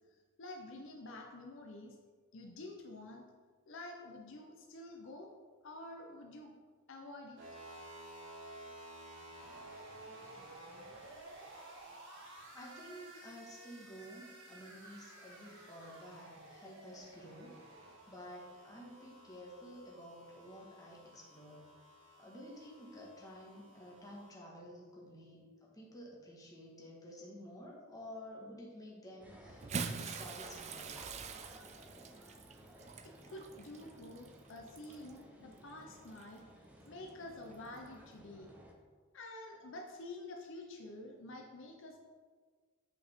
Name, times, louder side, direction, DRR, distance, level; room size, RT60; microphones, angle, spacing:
voice 1, 0.1-2.0 2.3-3.2 3.7-5.3 5.6-6.5 6.9-7.4 33.0-36.4 36.9-38.5 39.1-42.0, left 2 dB, 65° left, 2 dB, 0.7 m, -49 dB
sound 1, 7.4-24.3, right 1 dB, 60° right, 1.6 m, -54 dB
voice 2, 12.5-17.6 18.1-21.6 22.2-31.1, equal, 15° left, -4 dB, 1.5 m, -51 dB
sound 2, 29.2-38.7, right 1 dB, 5° right, 0.9 m, -56 dB
Bathtub (filling or washing) / Splash splatter, 29.5-35.2 36.1-36.2 37.7-37.8, right 5 dB, 30° right, 0.4 m, -44 dB
7.9 x 5.3 x 3.6 m, 1.5 s
head